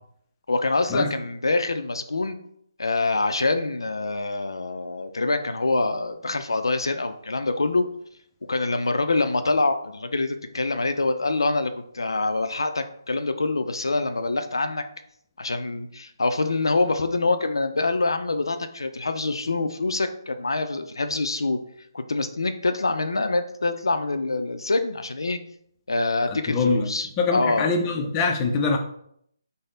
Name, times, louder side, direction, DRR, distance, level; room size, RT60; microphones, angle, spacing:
voice 1, 0.5-2.4 2.8-7.9 8.5-14.8 15.4-21.6 21.9-25.4 25.9-27.7, left 3 dB, 85° left, 8 dB, 0.4 m, -25 dB
voice 2, 26.3-26.9 27.2-28.8, left 4 dB, 20° left, 2 dB, 0.4 m, -23 dB
3.4 x 2.0 x 3.7 m, 0.69 s
figure-of-eight pair, 150°, 2 cm